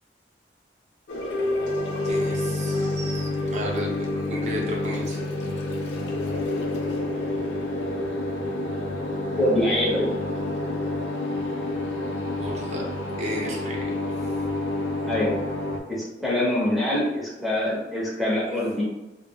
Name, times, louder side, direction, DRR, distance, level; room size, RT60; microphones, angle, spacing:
sound 1, 1.1-15.8, left 2 dB, 90° left, 0.5 m, -28 dB
voice 1, 2.0-5.2 12.4-12.8 13.2-13.9, equal, 40° right, -2 dB, 0.6 m, -33 dB
voice 2, 9.4-10.1 15.0-15.3 15.9-18.8, left 1 dB, ahead, -6 dB, 0.7 m, -24 dB
3.5 x 2.1 x 2.2 m, 1.0 s
head